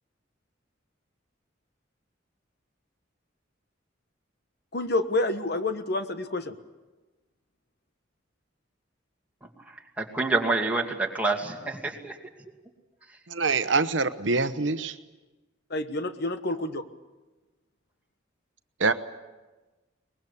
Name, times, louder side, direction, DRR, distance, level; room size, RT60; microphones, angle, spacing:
voice 1, 4.7-6.5 15.7-16.8, left 2 dB, 55° left, 1.2 m, -28 dB
voice 2, 10.0-12.2, right 3 dB, 10° right, 2.5 m, -27 dB
voice 3, 13.3-14.9 18.8-18.9, right 4 dB, 70° right, 1.0 m, -25 dB
23.0 x 20.5 x 8.4 m
head